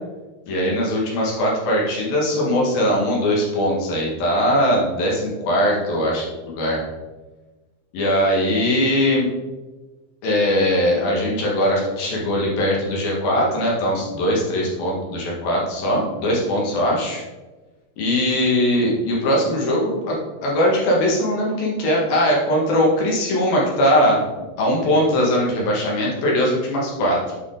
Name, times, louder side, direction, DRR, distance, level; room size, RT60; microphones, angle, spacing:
voice 1, 0.5-6.9 7.9-9.3 10.2-17.2 18.0-27.2, equal, 75° left, -3 dB, 3.4 m, -20 dB
8.1 x 4.7 x 3.9 m, 1.2 s
omnidirectional pair, 4.2 m